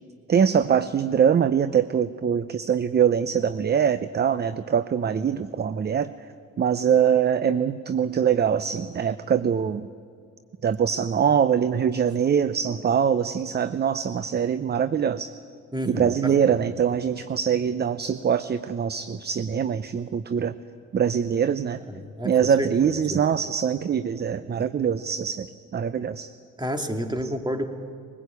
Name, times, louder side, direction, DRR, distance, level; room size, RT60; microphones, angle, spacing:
voice 1, 0.3-6.1 6.6-9.9 10.6-15.3 15.9-20.5 20.9-21.8 22.2-26.3, right 8 dB, 30° right, 13 dB, 0.7 m, -23 dB
voice 2, 15.7-16.7 21.9-22.3 22.6-23.2 24.5-24.7 26.6-27.7, equal, 15° right, 5 dB, 2.3 m, -30 dB
21.5 x 19.0 x 8.3 m, 2.2 s
supercardioid pair, 85°, 31 cm